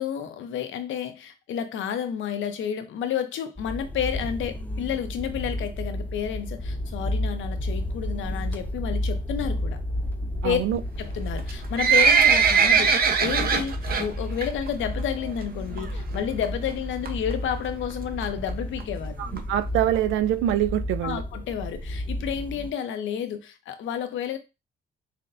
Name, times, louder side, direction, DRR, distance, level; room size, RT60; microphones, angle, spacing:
voice 1, 0.0-9.8 10.4-10.6 11.0-19.1 21.0-24.4, left 9 dB, 75° left, 0.7 m, -30 dB
sound 1, 3.6-22.7, left 1 dB, 10° left, 0.4 m, -32 dB
voice 2, 10.4-10.8 19.2-21.2, right 12 dB, 85° right, 0.4 m, -24 dB
Livestock farm animals working animals, 11.4-14.1 14.4-14.7 15.0-15.1 15.8-15.9 16.1-16.2 16.4-16.5 17.1-17.3 17.9-18.0 18.2-18.3 18.5-18.6 18.8-18.9 19.4-19.5 19.9-20.0 20.5-20.6, right 6 dB, 50° right, 0.7 m, -20 dB
5.7 x 2.2 x 2.5 m
cardioid pair, 90°, 20 cm